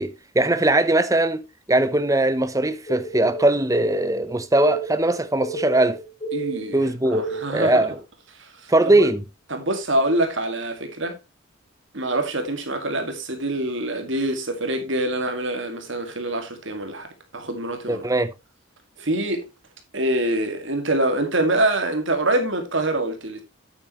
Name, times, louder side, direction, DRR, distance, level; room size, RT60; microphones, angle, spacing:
voice 1, 0.0-6.0 6.7-8.0 8.7-9.2 17.9-18.3, right 2 dB, 15° right, 0.7 m, -20 dB
sound 1, 2.9-7.7, right 2 dB, 25° left, 3.2 m, -32 dB
voice 2, 6.3-7.9 8.4-8.7 9.0-9.1 9.5-11.2 11.9-17.1 17.3-18.1 19.0-19.5 19.9-23.4, right 1 dB, 60° right, 2.1 m, -25 dB
9.0 x 8.8 x 3.0 m
head